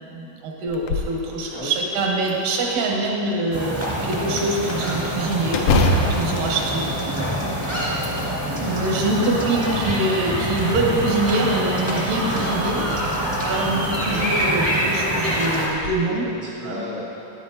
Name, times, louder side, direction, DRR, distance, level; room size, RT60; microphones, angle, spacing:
voice 1, 0.1-3.7 4.0-6.8 7.1-7.2 8.6-12.8 13.4-16.3 16.6-16.9, right 2 dB, 90° right, -1 dB, 2.7 m, -24 dB
sound 1, 0.7-1.2 1.6-1.7 2.3-3.1 5.5-7.5 7.9-8.6 9.3-10.1 11.0-11.7 13.1-13.2 13.8-14.0 14.5-14.6 15.6-15.9, left 2 dB, 90° left, 1.5 m, -25 dB
sound 2, 3.5-15.7, equal, 30° right, 0.5 m, -25 dB
voice 2, 7.0-7.6 7.9-8.4 14.1-14.3 16.1-17.1, left 2 dB, 75° left, -6 dB, 1.1 m, -36 dB
11.0 x 8.5 x 2.7 m, 3.0 s
omnidirectional pair, 3.7 m